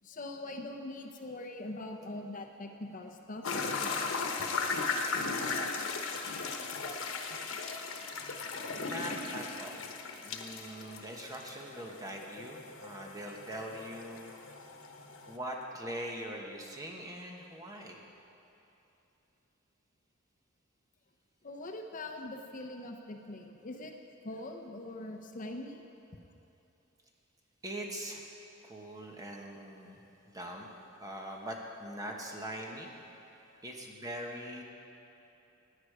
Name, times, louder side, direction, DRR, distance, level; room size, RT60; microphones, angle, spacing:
voice 1, 0.0-4.1 21.4-24.0 24.2-25.8, left 2 dB, 40° left, 4 dB, 0.7 m, -42 dB
sound 1, 3.4-15.4, left 4 dB, 90° left, 1.1 m, -37 dB
voice 2, 8.7-14.3 15.3-18.0 27.6-28.3 28.6-30.0 30.3-30.7 31.0-32.9 33.6-34.6, right 1 dB, 20° right, 0 dB, 1.3 m, -42 dB
17.5 x 9.7 x 4.9 m, 2.9 s
head